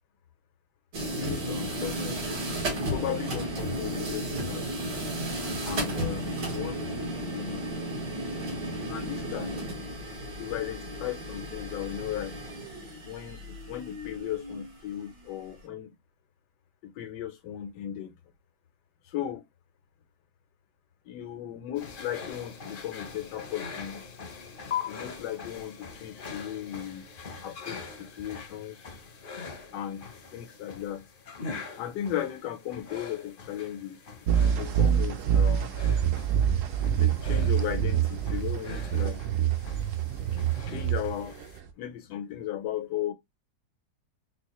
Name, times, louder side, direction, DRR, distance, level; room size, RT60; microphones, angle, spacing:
sound 1, 0.9-15.2, right 1 dB, 90° right, 2.2 m, -34 dB
voice 1, 1.0-2.3 2.6-4.8 5.6-7.7 8.9-9.6 10.4-12.4 13.0-15.9 16.8-18.2 19.0-19.5 21.1-24.1 24.9-27.0 27.4-28.8 29.7-31.1 31.8-34.0 34.6-35.8 37.0-39.3 40.7-41.4 41.8-43.1, left 11 dB, 85° left, 1.3 m, -36 dB
sound 2, 21.7-41.6, left 5 dB, 60° left, 0.5 m, -43 dB
sound 3, 34.3-41.7, right 9 dB, 65° right, 0.8 m, -26 dB
4.4 x 2.3 x 2.9 m
omnidirectional pair, 1.8 m